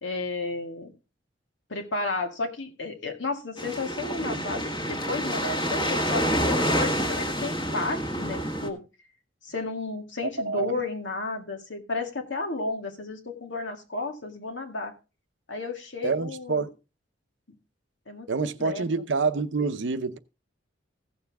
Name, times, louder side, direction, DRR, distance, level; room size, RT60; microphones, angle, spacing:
voice 1, 0.0-0.9 1.7-8.8 9.4-14.9 15.5-16.7 18.1-18.8, left 3 dB, 80° left, 2.0 m, -33 dB
sound 1, 3.6-8.7, equal, 25° left, 1.7 m, -27 dB
voice 2, 10.2-10.8 16.0-16.7 18.3-20.2, right 4 dB, 70° right, 0.7 m, -27 dB
16.0 x 7.0 x 3.5 m
head